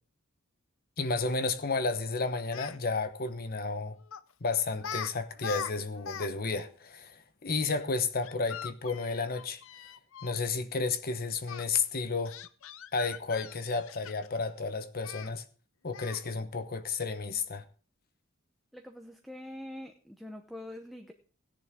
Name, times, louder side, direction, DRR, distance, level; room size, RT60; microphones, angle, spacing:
voice 1, 1.0-4.0 4.4-9.6 10.2-12.4 12.9-15.4 15.8-17.6, left 4 dB, 45° left, 1.0 m, -32 dB
Speech, 2.4-2.8 4.1-4.3 4.8-5.1 5.4-6.3 6.6-6.7 8.2-10.4 11.5-11.6 12.3-14.4 15.0-15.3 15.9-16.3, left 8 dB, 70° left, 0.6 m, -41 dB
voice 2, 18.7-21.1, left 1 dB, ahead, 0.8 m, -44 dB
16.5 x 10.5 x 3.7 m
head